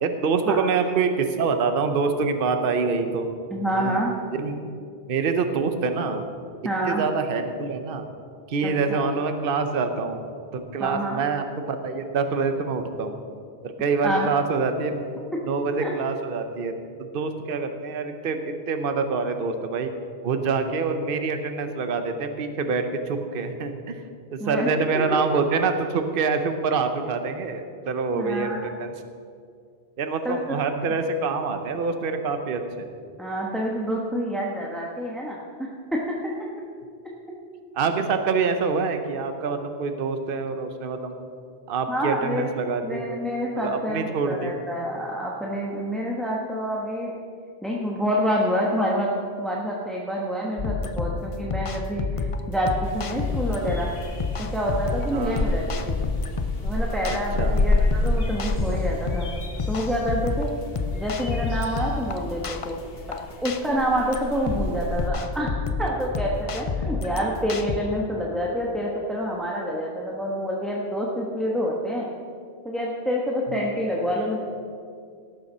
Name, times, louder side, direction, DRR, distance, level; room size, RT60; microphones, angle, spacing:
voice 1, 0.0-3.3 3.7-4.0 4.3-4.7 5.1-6.2 6.8-8.1 8.5-10.2 10.5-13.2 13.6-15.1 15.4-16.7 17.0-19.9 20.2-24.0 24.3-28.9 30.0-32.8 37.7-41.1 41.7-43.2 43.6-44.6 55.1-55.4 57.3-57.6 67.0-67.1 73.5-73.6, right 4 dB, 55° right, 7 dB, 1.0 m, -26 dB
voice 2, 3.5-4.2 6.6-7.0 8.6-9.0 10.8-11.2 14.0-14.3 15.8-15.9 24.4-24.7 28.1-28.8 30.2-30.6 33.2-36.0 41.9-42.5 42.8-47.1 47.6-49.1 49.4-53.9 54.5-56.0 56.6-59.3 59.7-60.5 60.9-62.8 63.4-65.5 65.8-72.1 72.6-74.4, equal, ahead, -3 dB, 1.2 m, -27 dB
sound 1, 50.6-67.8, left 4 dB, 35° left, 0.6 m, -29 dB
sound 2, 52.8-65.1, left 2 dB, 60° left, 1.5 m, -30 dB
18.0 x 6.8 x 5.5 m, 2.3 s
omnidirectional pair, 1.1 m